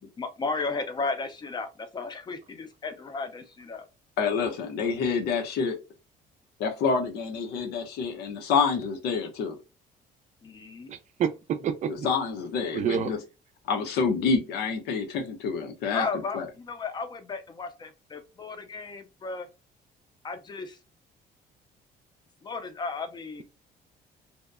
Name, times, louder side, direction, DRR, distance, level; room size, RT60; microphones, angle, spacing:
voice 1, 0.0-3.9 10.4-10.9 15.9-19.5 20.2-20.8 22.4-23.4, left 4 dB, 25° left, 0.5 m, -34 dB
voice 2, 4.2-5.8 6.6-9.6 12.0-13.2 13.7-16.1 16.3-16.4, left 5 dB, 85° left, 0.6 m, -27 dB
voice 3, 10.9-12.1 12.7-13.1, right 8 dB, 45° right, 0.4 m, -28 dB
2.7 x 2.1 x 2.3 m
cardioid pair, 115°, 17 cm